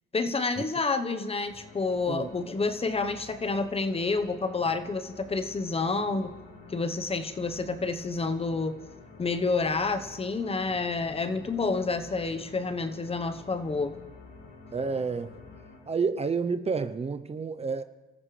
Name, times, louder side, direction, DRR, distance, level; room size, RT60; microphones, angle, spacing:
voice 1, 0.1-6.3 6.7-8.8 9.2-13.9, left 3 dB, 30° left, 9 dB, 1.1 m, -29 dB
sound 1, 1.4-15.8, left 3 dB, 75° left, 7.8 m, -49 dB
voice 2, 14.7-15.4 15.9-17.8, right 5 dB, 30° right, 10 dB, 0.8 m, -29 dB
29.5 x 14.0 x 3.4 m, 1.1 s
cardioid pair, 90°, 20 cm